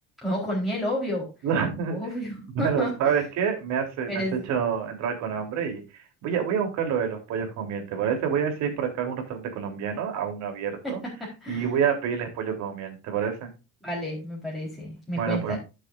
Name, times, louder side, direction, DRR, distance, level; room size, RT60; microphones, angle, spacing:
voice 1, 0.2-1.3 1.9-3.2 4.1-4.4 10.8-11.7 13.8-15.6, equal, ahead, -4 dB, 4.1 m, -31 dB
voice 2, 1.4-2.0 2.6-5.8 6.2-11.0 11.5-13.5 15.2-15.6, right 7 dB, 60° right, 4 dB, 3.6 m, -27 dB
11.5 x 7.9 x 2.6 m, 0.28 s
cardioid pair, 130°, 32 cm